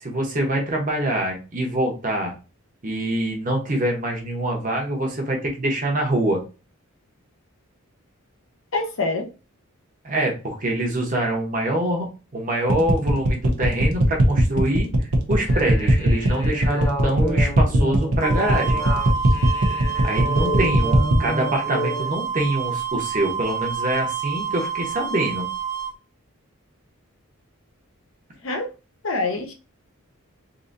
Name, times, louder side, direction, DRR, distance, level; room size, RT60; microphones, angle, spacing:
voice 1, 0.0-2.3 2.8-6.4 10.0-14.9 15.3-18.8 20.0-25.5, right 1 dB, 35° right, 1 dB, 1.0 m, -25 dB
voice 2, 8.7-9.3 28.4-28.7 29.0-29.5, left 3 dB, 60° left, 3 dB, 0.7 m, -25 dB
sound 1, 12.7-21.2, right 2 dB, 85° right, 0.8 m, -19 dB
sound 2, 15.4-22.1, equal, 15° left, 0.9 m, -31 dB
sound 3, 18.2-25.9, right 7 dB, 15° right, 0.6 m, -28 dB
3.9 x 2.7 x 2.6 m, 0.31 s
head